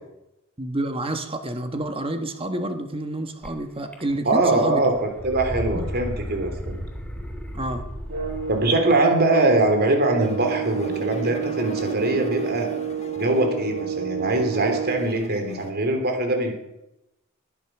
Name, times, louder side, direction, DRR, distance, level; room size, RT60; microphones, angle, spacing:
voice 1, 0.6-4.8 5.7-5.9 7.5-7.8, right 1 dB, 25° right, 6 dB, 1.4 m, -29 dB
sound 1, 3.4-3.5 3.9-4.5 4.8-8.7, equal, 5° left, 2.6 m, -34 dB
voice 2, 4.2-6.8 8.5-12.7 13.1-16.5, right 2 dB, 50° right, 4 dB, 3.4 m, -22 dB
sound 2, 8.1-15.2, right 8 dB, 70° right, 7.7 m, -29 dB
sound 3, 10.2-15.7, left 1 dB, 30° left, 1.6 m, -39 dB
19.5 x 11.0 x 6.0 m, 0.92 s
head